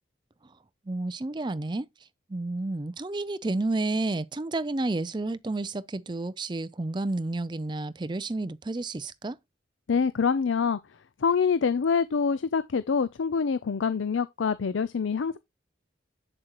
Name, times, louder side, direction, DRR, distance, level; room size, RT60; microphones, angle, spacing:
voice 1, 0.9-1.9 2.3-9.4, right 2 dB, 25° right, 0.4 m, -30 dB
voice 2, 9.9-10.8 11.2-15.4, left 5 dB, 90° left, 0.5 m, -25 dB
8.0 x 7.5 x 3.0 m
head